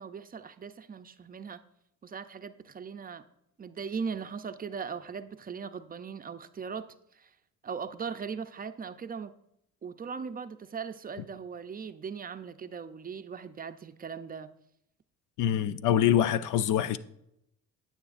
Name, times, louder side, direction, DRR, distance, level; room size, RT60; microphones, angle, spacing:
voice 1, 0.0-1.6 2.0-3.2 3.6-7.4 7.6-9.3 9.8-14.5, right 6 dB, 30° right, 0.5 m, -39 dB
voice 2, 15.4-17.0, left 10 dB, 85° left, 0.5 m, -25 dB
9.5 x 8.7 x 2.5 m
cardioid pair, 90°, 30 cm